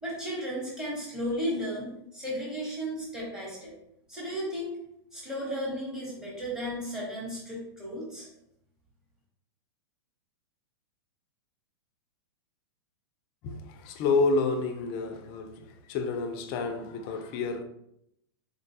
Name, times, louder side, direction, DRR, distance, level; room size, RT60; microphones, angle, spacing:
voice 1, 0.0-3.7 4.1-4.8 5.1-8.3, equal, 5° right, 1.0 m, -34 dB
voice 2, 13.4-17.6, left 3 dB, 35° left, 0.4 m, -29 dB
3.8 x 2.2 x 2.7 m
hypercardioid pair, 150°, 13 cm